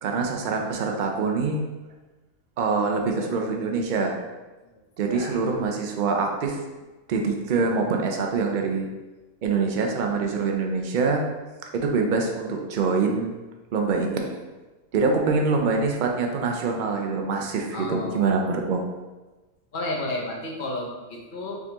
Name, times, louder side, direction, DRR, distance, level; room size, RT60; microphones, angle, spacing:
voice 1, 0.0-1.7 2.6-4.2 5.0-6.6 7.1-8.9 9.4-11.2 11.7-13.3 13.7-14.4 14.9-18.8, right 4 dB, 60° right, 2 dB, 0.5 m, -25 dB
voice 2, 17.7-18.6 19.7-21.6, left 2 dB, 45° left, -1 dB, 0.8 m, -32 dB
4.7 x 3.5 x 2.9 m, 1.2 s
omnidirectional pair, 1.5 m